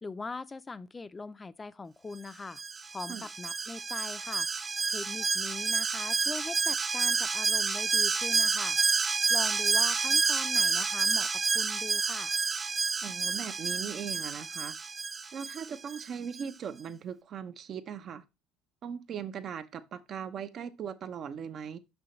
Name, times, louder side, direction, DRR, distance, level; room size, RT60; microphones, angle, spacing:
voice 1, 0.0-2.6 2.9-4.5 4.9-8.8 9.3-12.3, left 3 dB, 25° left, 0.6 m, -41 dB
Alarm, 2.6-16.1 16.4-16.5, right 4 dB, 25° right, 0.3 m, -29 dB
voice 2, 13.0-14.7 15.3-18.2 18.8-21.8, right 7 dB, 50° right, 0.8 m, -39 dB
6.2 x 5.7 x 3.2 m
supercardioid pair, 80°, 0 cm